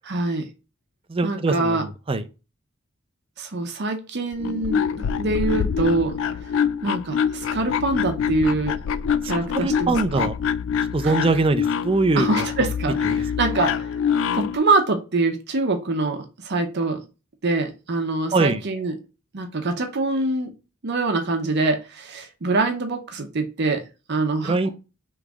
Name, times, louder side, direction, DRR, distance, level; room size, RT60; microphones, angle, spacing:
voice 1, 0.0-0.5 1.2-1.8 3.4-6.1 6.8-8.8 9.2-10.3 11.0-11.1 12.1-13.9 14.3-17.0 17.4-18.9 19.3-20.5 20.8-24.7, right 3 dB, 55° right, 0.7 m, -24 dB
voice 2, 1.1-2.2 9.5-10.3 10.9-12.5 13.0-13.2 18.3-18.6 24.4-24.7, right 3 dB, 25° right, 0.5 m, -22 dB
sound 1, 4.3-14.6, left 7 dB, 65° left, 0.3 m, -25 dB
3.5 x 3.1 x 4.9 m
head